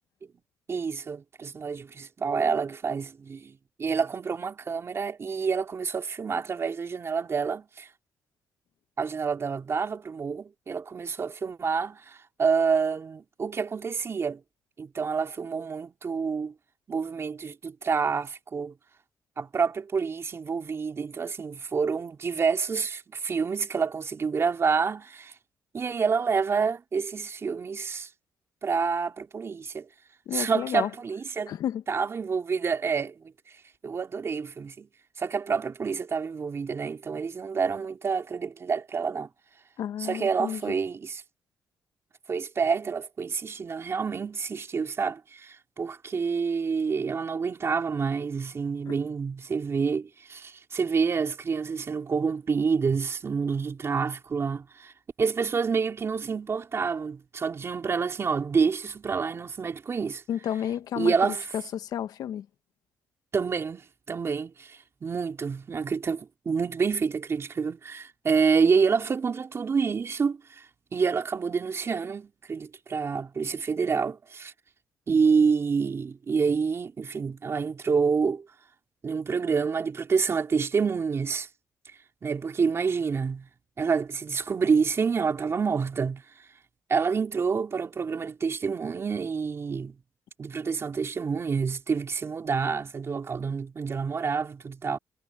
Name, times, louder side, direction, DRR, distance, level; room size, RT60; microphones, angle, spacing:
voice 1, 0.7-7.9 9.0-14.4 14.8-16.5 16.9-18.7 19.4-25.3 25.7-28.1 28.6-29.9 30.3-31.5 31.9-33.3 33.8-34.9 35.2-39.3 40.0-41.2 42.3-54.9 55.2-60.2 61.0-61.4 63.3-70.6 70.9-74.5 75.1-78.4 79.0-81.5 82.2-83.5 83.8-86.2 86.9-90.0 90.4-95.0, right 5 dB, 40° right, 3.4 m, -28 dB
voice 2, 30.3-30.9 31.5-31.8 39.8-40.7 48.9-49.0 60.3-62.5, left 10 dB, 75° left, 1.0 m, -32 dB
cardioid pair, 90°, 7 cm